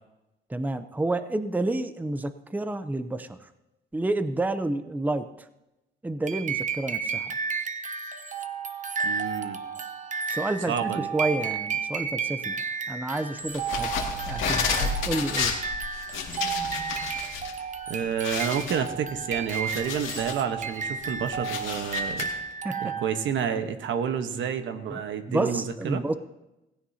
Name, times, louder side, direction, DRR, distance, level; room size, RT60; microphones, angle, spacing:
voice 1, 0.5-3.4 3.9-5.5 6.0-7.4 10.3-12.6 12.9-13.9 14.2-15.5 22.6-22.9 24.9-25.0 25.3-26.1, right 2 dB, 10° right, 11 dB, 0.6 m, -29 dB
sound 1, 6.3-23.3, right 6 dB, 40° right, 0.9 m, -32 dB
voice 2, 9.0-9.6 10.7-11.1 17.9-22.3 22.8-26.0, right 7 dB, 75° right, 7 dB, 1.2 m, -29 dB
sound 2, 13.5-17.5 17.8-17.9 18.2-20.4 20.9-22.2, left 5 dB, 85° left, 2.1 m, -31 dB
16.5 x 15.5 x 2.8 m, 0.95 s
cardioid pair, 90°, 20 cm